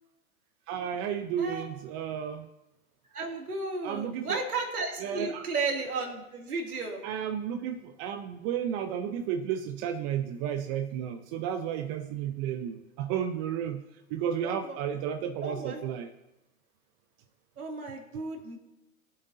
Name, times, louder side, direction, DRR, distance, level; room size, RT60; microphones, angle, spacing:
voice 1, 0.7-2.5 3.8-4.4 5.0-5.5 7.0-13.8 14.1-16.1, right 9 dB, 30° right, 8 dB, 0.6 m, -32 dB
voice 2, 3.1-7.0 14.4-14.8 15.4-15.8 17.6-18.6, right 3 dB, 85° right, 0 dB, 2.7 m, -34 dB
19.5 x 8.0 x 2.7 m, 0.94 s
hypercardioid pair, 120°, 43 cm